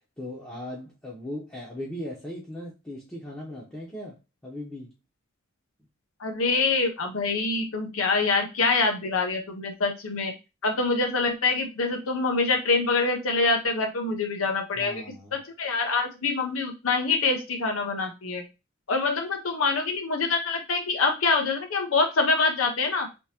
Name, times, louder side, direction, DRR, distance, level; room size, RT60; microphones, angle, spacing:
voice 1, 0.2-4.9 14.8-15.4, left 1 dB, 10° left, 0.7 m, -38 dB
voice 2, 6.2-10.3 10.6-15.0 15.6-18.4 18.9-23.1, left 3 dB, 85° left, 0.7 m, -25 dB
3.4 x 2.8 x 2.9 m
head